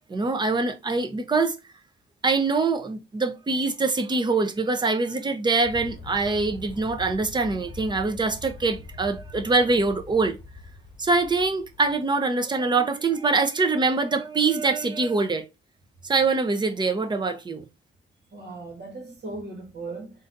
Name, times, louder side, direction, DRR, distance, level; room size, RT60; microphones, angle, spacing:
voice 1, 0.1-1.6 2.2-10.4 11.0-15.4 16.0-17.7, right 3 dB, 20° right, 0.6 m, -24 dB
Aircraft, 5.6-12.0, left 2 dB, 25° left, 1.0 m, -43 dB
voice 2, 18.3-20.3, right 3 dB, 55° right, 1.5 m, -38 dB
3.9 x 2.6 x 3.9 m
cardioid pair, 105°, 20 cm